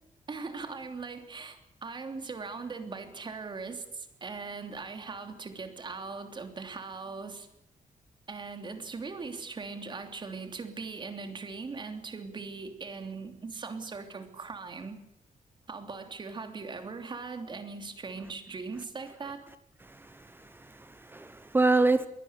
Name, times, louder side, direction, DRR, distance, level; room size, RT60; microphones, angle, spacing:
voice 1, 0.3-7.5 8.3-15.0 15.7-19.4, right 4 dB, 35° right, 7 dB, 3.1 m, -40 dB
voice 2, 19.8-22.1, right 3 dB, 15° right, 12 dB, 0.9 m, -27 dB
22.5 x 18.0 x 8.3 m, 0.81 s
wide cardioid pair, 175°, 14 cm